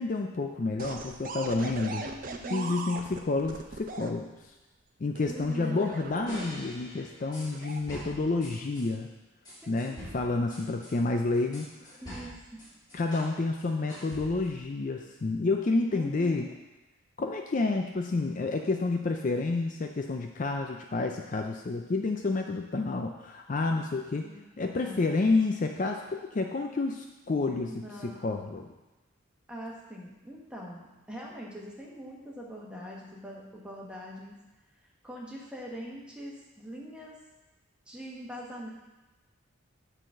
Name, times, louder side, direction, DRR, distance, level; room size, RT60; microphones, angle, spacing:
voice 1, 0.0-2.0 2.5-4.3 5.0-9.1 9.7-12.0 12.9-16.5 17.2-24.3 24.6-28.7, left 3 dB, 40° left, 3 dB, 0.4 m, -29 dB
sound 1, 0.8-4.1 5.1-6.8 7.4-7.8, right 3 dB, 40° right, 0.6 m, -39 dB
voice 2, 2.0-2.8 5.3-5.9 9.6-10.2 11.9-12.6 15.9-16.6 24.1-25.2 27.7-28.5 29.5-34.4 35.0-37.2 37.9-38.7, equal, 5° right, -3 dB, 1.3 m, -43 dB
sound 2, 6.3-8.9 9.4-13.3 13.6-14.6, equal, 20° left, 2.8 m, -45 dB
9.1 x 3.9 x 6.2 m, 1.1 s
head